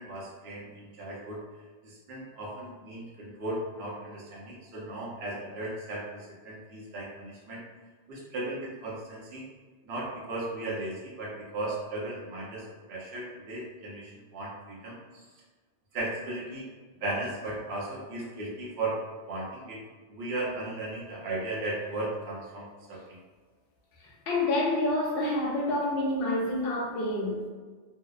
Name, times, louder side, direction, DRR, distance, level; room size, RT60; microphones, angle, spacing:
voice 1, 0.0-1.4 1.8-7.6 8.1-9.5 9.9-15.2 15.9-16.7 17.0-19.0 19.3-19.8 20.1-23.2, right 2 dB, 65° right, -4 dB, 0.9 m, -36 dB
voice 2, 24.0-27.5, left 1 dB, 60° left, -3 dB, 0.7 m, -28 dB
2.7 x 2.0 x 2.3 m, 1.4 s
omnidirectional pair, 1.2 m